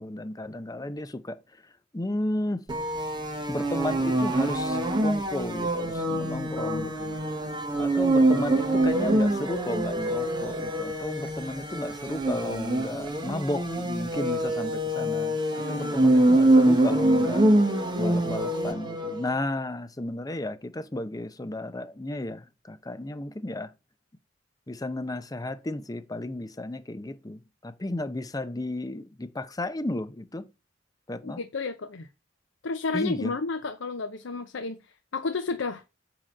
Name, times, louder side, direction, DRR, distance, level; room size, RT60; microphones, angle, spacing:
voice 1, 0.0-1.4 1.9-2.6 3.5-7.2 7.8-17.5 18.0-23.7 24.7-30.5 31.1-31.4 32.9-33.3, left 1 dB, 20° left, 0.6 m, -33 dB
sound 1, 2.7-19.3, right 1 dB, 25° right, 1.2 m, -25 dB
voice 2, 15.5-16.0 31.2-32.1 32.6-34.8 35.1-35.8, left 4 dB, 85° left, 0.6 m, -31 dB
8.9 x 3.0 x 6.4 m
head